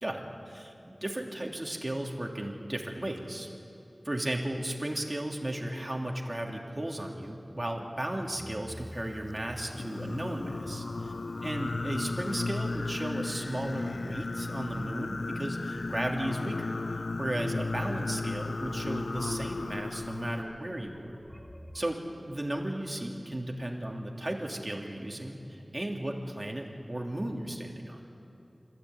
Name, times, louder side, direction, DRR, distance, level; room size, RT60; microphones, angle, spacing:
voice 1, 0.0-3.5 4.0-11.1 11.4-16.8 17.2-21.2 21.7-28.0, right 1 dB, 35° right, 1 dB, 3.0 m, -35 dB
sound 1, 8.2-22.0, equal, 30° left, 2.5 m, -50 dB
Singing, 9.7-20.4, left 3 dB, 85° left, 0.4 m, -35 dB
25.0 x 15.5 x 9.6 m, 2.9 s
wide cardioid pair, 45°, 0 cm